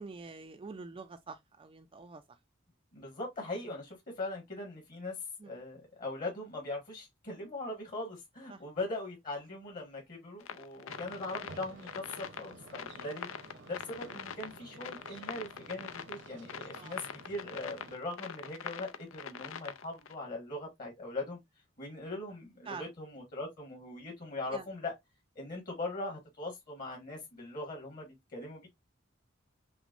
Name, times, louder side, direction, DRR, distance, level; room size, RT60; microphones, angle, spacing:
voice 1, 0.0-2.4 5.4-5.5 8.5-8.6 16.7-17.0 22.7-22.9 24.5-24.7, right 4 dB, 25° right, 0.4 m, -46 dB
voice 2, 2.9-5.2 5.4-13.3 13.7-21.4 21.8-24.9 25.3-28.7, left 2 dB, 45° left, 1.4 m, -40 dB
sound 1, 10.4-20.1, left 7 dB, 80° left, 0.5 m, -43 dB
sound 2, 10.9-18.0, right 2 dB, 65° right, 0.9 m, -53 dB
5.9 x 2.1 x 2.5 m
head